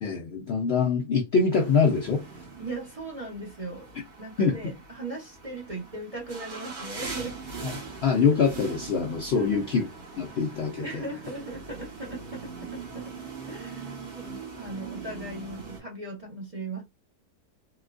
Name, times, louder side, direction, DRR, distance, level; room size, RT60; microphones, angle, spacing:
voice 1, 0.0-2.2 4.4-4.6 7.6-7.7 8.0-9.9 10.2-11.0, left 5 dB, 60° left, 0.7 m, -24 dB
sound 1, 1.5-15.8, right 4 dB, 75° right, 1.8 m, -42 dB
voice 2, 2.6-7.4 9.4-9.7 10.8-13.1 13.5-16.8, right 2 dB, 25° right, 0.9 m, -38 dB
3.9 x 2.2 x 2.4 m
omnidirectional pair, 1.7 m